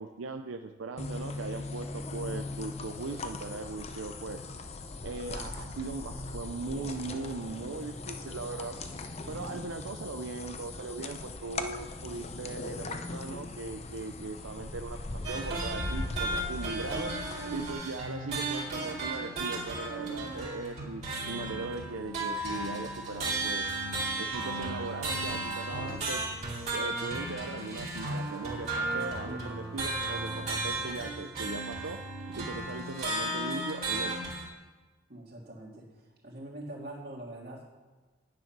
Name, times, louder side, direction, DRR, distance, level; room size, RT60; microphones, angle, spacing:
voice 1, 0.0-4.4 5.0-9.0 9.3-23.6 24.2-26.2 26.6-32.0 32.3-34.3, right 3 dB, 90° right, 6 dB, 0.6 m, -39 dB
sound 1, 1.0-17.7, left 2 dB, 30° left, 0.6 m, -39 dB
sound 2, 15.2-34.5, right 2 dB, 35° right, 2.8 m, -34 dB
voice 2, 35.1-35.8 36.2-37.7, right 1 dB, 50° right, -2 dB, 2.6 m, -43 dB
9.9 x 7.7 x 6.0 m, 1.3 s
head